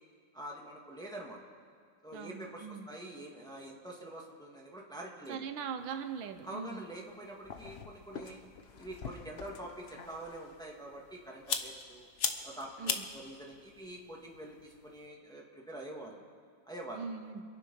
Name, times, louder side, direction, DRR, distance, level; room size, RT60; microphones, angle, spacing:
voice 1, 0.3-1.4 2.0-5.4 6.4-8.4 8.8-12.1 12.4-16.2 16.6-17.1, right 1 dB, ahead, -2 dB, 1.9 m, -46 dB
voice 2, 2.1-2.9 5.3-6.9 12.8-13.1 16.9-17.4, right 6 dB, 90° right, 8 dB, 1.7 m, -41 dB
sound 1, 5.8-15.1, left 5 dB, 50° left, 0.8 m, -42 dB
26.5 x 9.6 x 5.6 m, 2.1 s
omnidirectional pair, 2.1 m